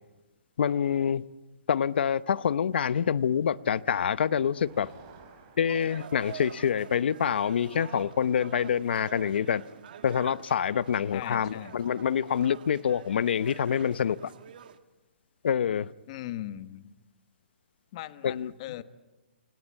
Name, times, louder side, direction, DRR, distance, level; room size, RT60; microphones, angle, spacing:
voice 1, 0.6-1.2 1.7-4.9 5.6-9.6 10.0-14.3 15.4-15.9 18.2-18.5, left 8 dB, 60° left, 0.8 m, -26 dB
Motor vehicle (road), 3.1-10.7, right 5 dB, 25° right, 5.7 m, -59 dB
sound 1, 5.7-14.8, right 9 dB, 50° right, 1.6 m, -47 dB
voice 2, 11.1-11.8 16.1-16.9 17.9-18.8, left 14 dB, 30° left, 1.2 m, -39 dB
28.0 x 25.5 x 8.4 m
hypercardioid pair, 165°, 6 cm